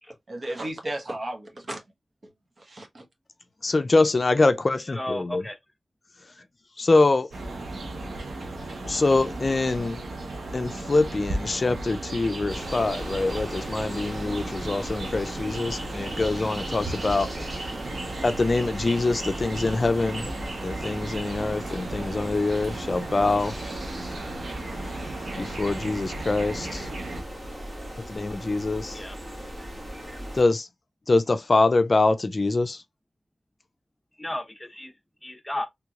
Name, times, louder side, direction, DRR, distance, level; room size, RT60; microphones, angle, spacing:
voice 1, 0.3-1.8 2.6-3.0, right 1 dB, 55° right, 1.2 m, -34 dB
voice 2, 3.6-5.4 6.8-7.3 8.8-10.0 10.5-17.3 18.2-20.3 20.6-23.6 25.4-26.9 28.1-29.0 30.3-30.7 31.1-32.8, left 3 dB, 50° left, 0.4 m, -24 dB
voice 3, 4.9-5.6 28.9-29.2 34.2-34.9 35.2-35.7, left 1 dB, 15° left, 1.0 m, -33 dB
sound 1, 7.3-27.2, right 2 dB, 85° right, 1.0 m, -35 dB
sound 2, 12.5-30.4, equal, 35° right, 1.7 m, -38 dB
3.5 x 3.0 x 2.4 m
cardioid pair, 50°, 0 cm